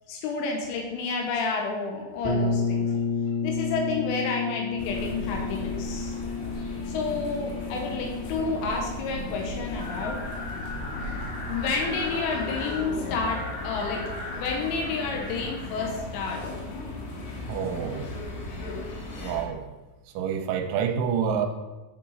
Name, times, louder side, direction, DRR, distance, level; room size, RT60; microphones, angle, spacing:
voice 1, 0.1-3.0 3.4-6.2 6.9-10.2 11.5-14.0 14.3-16.4, left 4 dB, 90° left, 1 dB, 3.7 m, -30 dB
sound 1, 2.2-11.9, left 4 dB, 40° right, 0.8 m, -32 dB
sound 2, 4.8-19.4, left 2 dB, 65° left, 3.4 m, -36 dB
sound 3, 9.8-16.0, left 1 dB, 40° left, 1.7 m, -39 dB
voice 2, 17.5-18.0 19.2-19.6 20.2-21.5, right 7 dB, 80° right, 6 dB, 3.2 m, -27 dB
10.0 x 6.7 x 4.1 m, 1.2 s
omnidirectional pair, 5.5 m